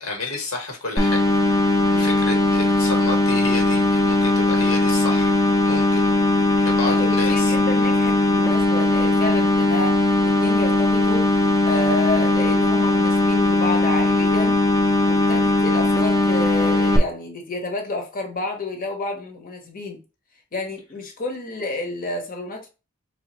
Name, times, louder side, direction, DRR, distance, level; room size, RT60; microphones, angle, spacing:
voice 1, 0.0-1.6 1.9-5.4 5.6-6.1 6.6-7.5, left 3 dB, 65° left, 1.1 m, -30 dB
sound 1, 1.0-17.0, left 2 dB, 15° left, 0.4 m, -19 dB
voice 2, 1.9-2.2 6.5-11.3 11.6-14.6 15.0-20.0 20.5-22.7, left 2 dB, 40° left, 0.9 m, -30 dB
3.3 x 2.1 x 4.1 m
head